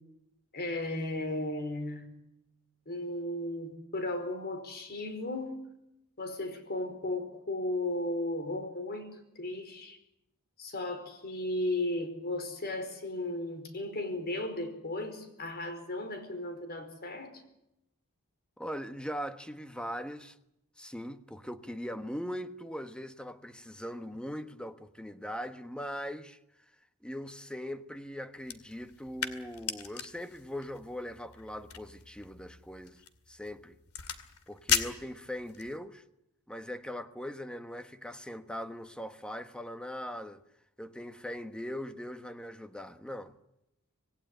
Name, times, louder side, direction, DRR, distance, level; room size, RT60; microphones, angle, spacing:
voice 1, 0.5-2.1 2.9-5.6 6.2-10.0 10.6-17.4, left 1 dB, 45° left, 4.8 m, -35 dB
voice 2, 18.6-20.4 20.8-26.4 27.0-33.0 33.3-33.7 34.5-36.0 36.5-40.4 40.8-43.4, equal, 5° left, 1.2 m, -40 dB
sound 1, 28.4-35.8, left 8 dB, 80° left, 2.2 m, -38 dB
26.0 x 19.0 x 9.1 m
head